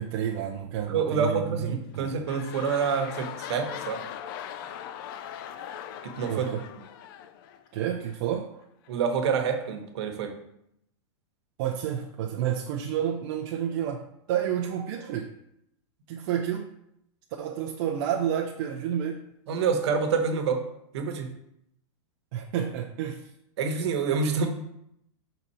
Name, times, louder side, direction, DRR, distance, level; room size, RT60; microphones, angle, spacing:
voice 1, 0.0-2.1 6.3-6.6 7.7-8.6 11.6-14.0 14.3-15.3 16.1-16.7 17.4-19.3 22.3-23.3, right 9 dB, 50° right, 0 dB, 0.6 m, -30 dB
voice 2, 0.9-4.0 6.0-6.7 8.9-10.4 19.5-20.6 20.9-21.3 23.6-24.5, right 5 dB, 65° right, 5 dB, 1.2 m, -27 dB
sound 1, 1.8-8.2 8.9-9.0, left 10 dB, 45° left, 0.4 m, -40 dB
6.7 x 4.0 x 4.3 m, 0.78 s
supercardioid pair, 150°, 15 cm